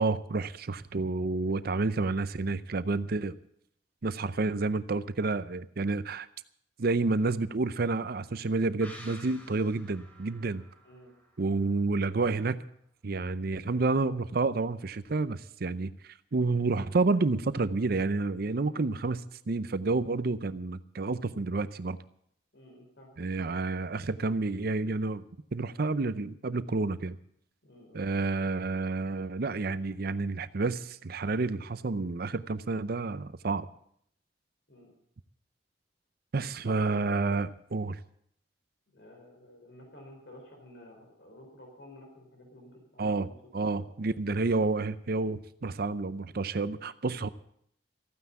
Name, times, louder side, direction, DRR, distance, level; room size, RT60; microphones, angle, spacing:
voice 1, 0.0-3.3 4.0-6.3 6.8-10.6 11.4-12.6 13.0-22.0 23.2-25.2 25.5-27.2 27.9-33.7 36.3-38.0 43.0-43.3 43.5-47.3, right 3 dB, 55° right, 15 dB, 0.6 m, -29 dB
sound 1, 8.8-12.3 12.6-12.7, equal, 10° left, 3.0 m, -52 dB
voice 2, 10.8-11.1 22.5-23.2 27.6-28.0 34.7-34.9 36.6-37.3 38.9-43.3 43.6-43.9, left 1 dB, 65° left, 0 dB, 4.4 m, -52 dB
14.5 x 9.5 x 8.3 m, 0.68 s
head